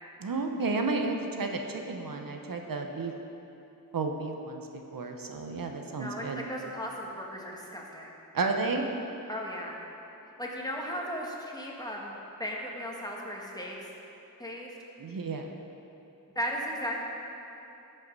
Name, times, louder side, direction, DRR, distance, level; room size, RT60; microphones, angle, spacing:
voice 1, 0.2-3.1 3.9-6.4 8.3-8.9 15.0-15.5, right 3 dB, 75° right, 3 dB, 0.9 m, -32 dB
voice 2, 6.0-8.1 9.3-9.8 10.4-13.9 14.4-14.7 16.3-17.0, equal, 10° left, -2 dB, 1.7 m, -36 dB
13.5 x 5.6 x 5.4 m, 2.9 s
wide cardioid pair, 65°, 35 cm